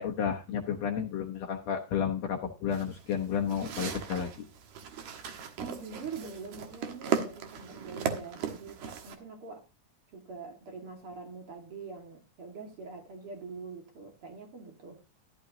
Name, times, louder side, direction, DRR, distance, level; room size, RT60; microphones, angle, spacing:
voice 1, 0.0-4.3, left 7 dB, 60° left, 1.9 m, -32 dB
sound 1, 2.7-9.2, right 8 dB, 65° right, 2.7 m, -37 dB
voice 2, 5.6-9.6 10.1-15.0, right 4 dB, 45° right, 2.4 m, -44 dB
14.0 x 11.5 x 2.7 m
omnidirectional pair, 3.9 m